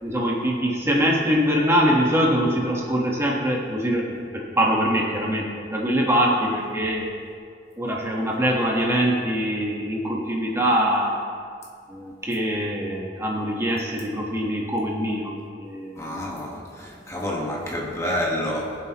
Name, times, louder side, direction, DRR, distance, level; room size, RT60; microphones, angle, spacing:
voice 1, 0.0-7.1 7.8-11.2 11.9-16.2, equal, 15° right, -2 dB, 1.3 m, -23 dB
voice 2, 16.0-18.7, left 1 dB, 15° left, -2 dB, 1.5 m, -28 dB
21.0 x 7.8 x 3.0 m, 2.2 s
head